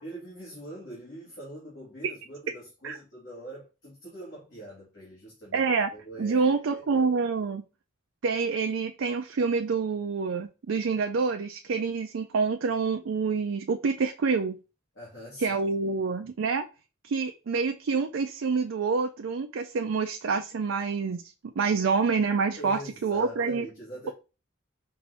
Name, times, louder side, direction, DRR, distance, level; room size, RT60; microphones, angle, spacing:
voice 1, 0.0-5.6 5.9-7.1 14.9-15.6 15.9-16.0 21.6-21.9 22.6-24.1, right 1 dB, 60° left, 2.0 m, -44 dB
voice 2, 5.5-5.9 6.2-7.6 8.2-14.6 15.4-16.6 17.0-23.7, right 4 dB, 75° right, 0.4 m, -27 dB
5.1 x 2.6 x 3.3 m
head